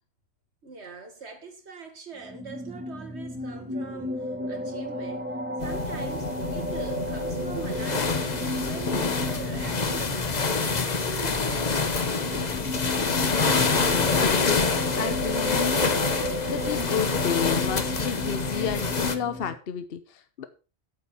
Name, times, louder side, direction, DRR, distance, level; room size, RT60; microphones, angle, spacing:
voice 1, 0.6-5.3 5.6-12.2, right 4 dB, 85° right, 2.2 m, -42 dB
sound 1, 2.2-19.5, equal, 10° right, 1.1 m, -34 dB
sound 2, 5.6-19.2, left 4 dB, 40° left, 1.1 m, -27 dB
voice 2, 13.7-20.5, left 7 dB, 65° left, 1.1 m, -31 dB
8.5 x 8.4 x 5.8 m
omnidirectional pair, 1.1 m